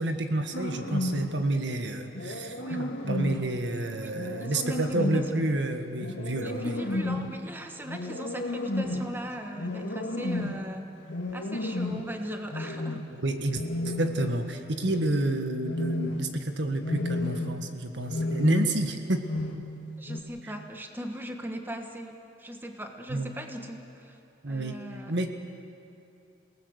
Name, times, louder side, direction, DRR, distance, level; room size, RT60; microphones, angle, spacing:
voice 1, 0.0-6.8 13.1-19.3 20.4-20.5 23.1-23.3 24.4-24.8 25.1-25.3, right 1 dB, 75° right, 6 dB, 1.6 m, -29 dB
sound 1, 0.5-1.4 2.1-3.5 4.1-5.4 6.0-7.3 7.9-9.1 9.6-10.6 11.1-12.1 12.5-13.1 13.5-14.4 14.8-15.2 15.6-16.4 16.8-17.6 18.1-18.9 19.2-19.7 20.1-20.2, left 1 dB, 90° left, 1.9 m, -32 dB
voice 2, 3.9-4.8 5.1-5.2 6.4-10.9 11.3-13.0 20.0-24.2 24.5-25.1, equal, 10° right, 4 dB, 1.3 m, -39 dB
29.0 x 18.5 x 6.6 m, 2.8 s
head